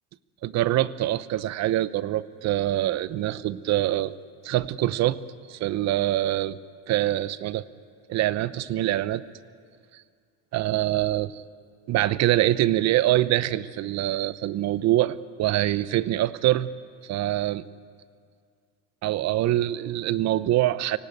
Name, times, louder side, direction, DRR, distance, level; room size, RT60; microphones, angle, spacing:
voice 1, 0.4-4.1 4.4-5.2 5.5-6.6 6.9-7.7 8.1-9.3 10.5-11.4 11.9-16.7 17.0-17.6 19.0-21.0, right 14 dB, 50° right, 16 dB, 0.8 m, -24 dB
24.0 x 17.5 x 9.1 m, 2.2 s
cardioid pair, 120°, 34 cm